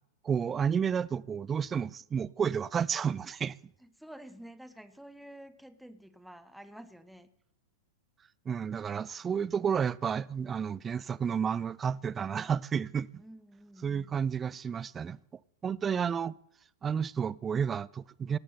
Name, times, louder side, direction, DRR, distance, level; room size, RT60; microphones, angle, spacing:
voice 1, 0.2-3.6 8.5-13.2 13.8-15.2 15.6-16.4 16.8-18.4, right 7 dB, 20° right, 0.4 m, -31 dB
voice 2, 3.8-7.3 13.2-14.3, equal, ahead, 0.9 m, -50 dB
18.5 x 6.8 x 5.5 m
hypercardioid pair, 105°, 0 cm